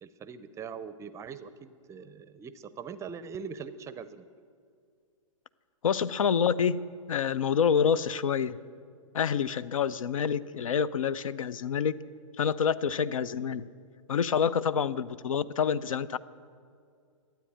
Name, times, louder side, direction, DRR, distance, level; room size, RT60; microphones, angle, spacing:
voice 1, 0.0-4.3, right 6 dB, 15° right, 14 dB, 0.5 m, -42 dB
voice 2, 5.8-8.6 9.1-12.0 12.4-13.7 14.1-16.2, left 7 dB, 80° left, 18 dB, 0.5 m, -27 dB
12.5 x 9.1 x 8.4 m, 2.3 s
hypercardioid pair, 120°, 17 cm